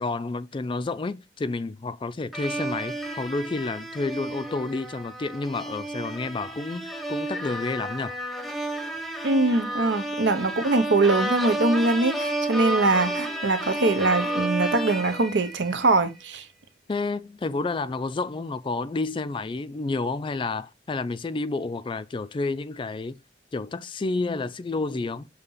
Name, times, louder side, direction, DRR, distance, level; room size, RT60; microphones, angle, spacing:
voice 1, 0.0-8.2 16.9-23.2 23.5-25.3, left 3 dB, 30° left, 0.4 m, -30 dB
sound 1, 2.3-16.0, right 1 dB, ahead, 0.7 m, -31 dB
voice 2, 9.2-16.5, right 2 dB, 70° right, 0.9 m, -22 dB
6.6 x 2.9 x 5.4 m
head